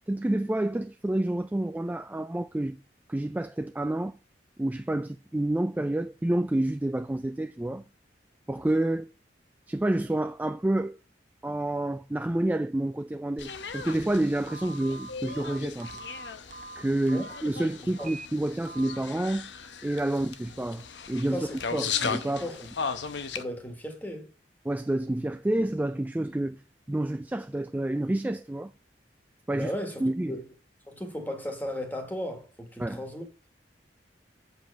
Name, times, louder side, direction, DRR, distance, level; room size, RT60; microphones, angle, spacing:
voice 1, 0.1-2.8 3.1-4.1 4.6-7.8 8.5-9.1 9.7-11.0 11.4-16.0 16.8-19.5 19.8-22.5 24.6-26.6 26.9-28.7 29.5-29.7 30.0-30.4 32.8-33.0, right 1 dB, 10° right, 0.3 m, -29 dB
sound 1, 13.4-23.4, left 6 dB, 85° left, 0.9 m, -37 dB
Telephone, 14.5-17.4 17.9-18.3 18.7-19.0, right 3 dB, 45° right, 0.9 m, -43 dB
voice 2, 23.3-24.3 29.5-30.4 30.9-33.3, equal, 10° left, 1.6 m, -35 dB
7.6 x 5.3 x 5.4 m
head